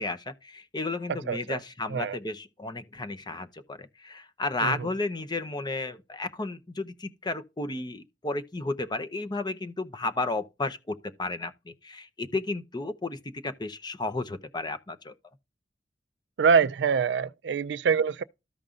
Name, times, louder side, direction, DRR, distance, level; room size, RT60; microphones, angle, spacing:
voice 1, 0.0-15.1, left 2 dB, 25° left, 0.7 m, -33 dB
voice 2, 1.3-1.6 1.9-2.2 4.6-4.9 16.4-18.2, right 6 dB, 70° right, 0.4 m, -25 dB
14.0 x 5.3 x 2.4 m
head